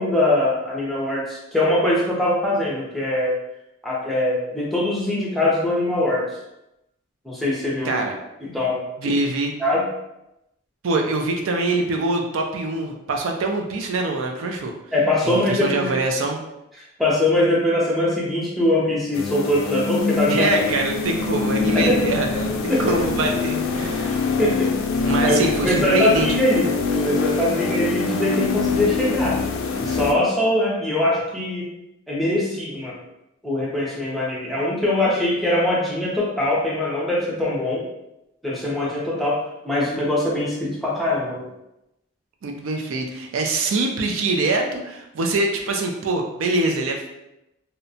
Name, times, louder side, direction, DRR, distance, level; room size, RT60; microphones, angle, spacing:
voice 1, 0.0-3.3 3.8-6.3 7.2-8.0 8.4-9.1 9.6-9.9 14.9-15.9 17.0-20.5 21.7-22.0 22.7-22.9 24.4-24.8 25.2-26.7 26.9-29.4 29.8-31.7 32.1-33.0 33.4-37.8 38.4-41.5, left 1 dB, ahead, -6 dB, 0.5 m, -22 dB
voice 2, 7.8-8.2 9.0-9.5 10.8-14.7 15.2-16.4 20.3-24.3 25.0-26.3 42.4-47.0, right 2 dB, 80° right, 2 dB, 0.4 m, -24 dB
sound 1, 19.1-30.1, left 4 dB, 80° left, 0.3 m, -24 dB
2.7 x 2.1 x 2.6 m, 0.89 s
head